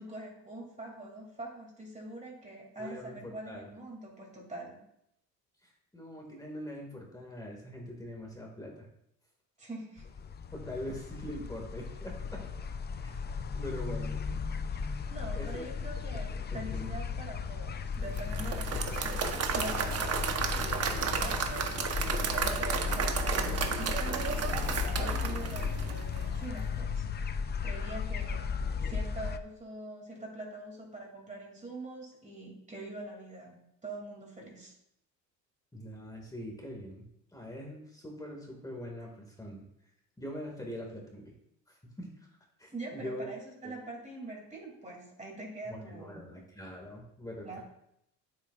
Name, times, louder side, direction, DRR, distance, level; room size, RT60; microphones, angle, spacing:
voice 1, 0.0-4.8 9.6-10.1 15.1-21.7 22.1-27.1 27.6-28.5 28.9-34.7 42.7-46.3 47.4-47.6, right 2 dB, 20° right, -1 dB, 2.7 m, -44 dB
voice 2, 2.8-3.7 5.6-8.9 10.5-12.4 13.0-13.1 13.5-14.2 15.3-15.7 16.7-16.9 20.9-21.2 35.7-39.7 40.2-41.4 41.7-42.3 42.6-43.3 43.6-43.7 45.7-47.6, equal, 10° left, -1 dB, 2.0 m, -43 dB
sound 1, 10.0-29.4, left 5 dB, 30° left, 0.5 m, -35 dB
Applause / Crowd, 18.2-26.3, right 6 dB, 45° right, 1.1 m, -33 dB
8.9 x 7.8 x 2.5 m, 0.77 s
cardioid pair, 95°, 36 cm